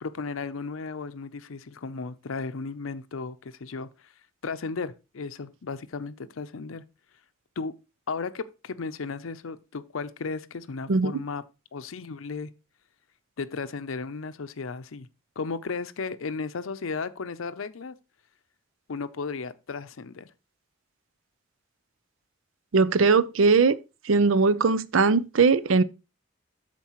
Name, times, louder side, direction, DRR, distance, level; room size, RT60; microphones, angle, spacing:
voice 1, 0.0-4.1 4.4-6.8 7.6-7.7 8.1-11.4 11.7-12.5 13.4-15.1 15.4-17.9 18.9-20.3, left 4 dB, 85° left, 0.6 m, -35 dB
voice 2, 22.7-23.8 24.1-25.8, right 4 dB, 75° right, 0.5 m, -20 dB
13.0 x 4.5 x 3.0 m
head